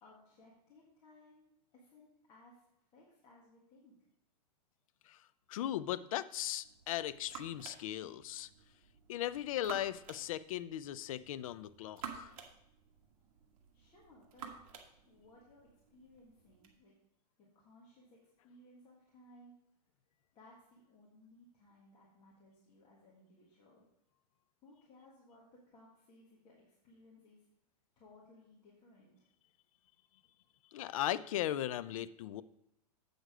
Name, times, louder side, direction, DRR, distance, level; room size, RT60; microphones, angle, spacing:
voice 1, 0.0-1.5 1.7-2.6 2.9-3.9 13.7-14.6 15.0-16.9 17.4-19.5 20.3-23.8 24.6-27.4 27.9-29.3, left 1 dB, 25° left, -5 dB, 1.6 m, -61 dB
voice 2, 5.5-8.5 9.1-12.4 30.7-32.4, left 12 dB, 55° left, 16 dB, 0.4 m, -38 dB
sound 1, 6.6-16.8, right 7 dB, 55° right, 1.5 m, -53 dB
7.9 x 6.5 x 4.9 m, 0.80 s
hypercardioid pair, 155°, 21 cm